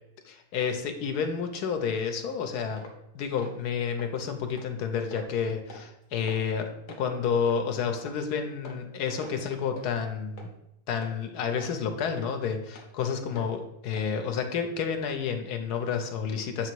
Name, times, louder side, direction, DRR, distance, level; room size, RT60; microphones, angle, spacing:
voice 1, 0.3-2.9 3.1-10.5 10.9-16.7, left 6 dB, 80° left, 5 dB, 1.3 m, -30 dB
sound 1, 2.8-3.0 3.4-3.6 4.0-4.1 4.6-4.7 5.1-5.3 5.7-5.9 6.3-6.4 6.9-7.0 7.5-7.6 8.0-8.2 8.6-8.9 9.2-9.4 9.8-10.0 10.4-10.5 11.0-11.1 11.6-11.7 12.2-12.3 12.7-12.9 13.4-13.5 13.9-14.1 14.5-14.6, left 1 dB, 40° left, 0.8 m, -45 dB
7.5 x 3.0 x 4.5 m, 0.83 s
omnidirectional pair, 1.7 m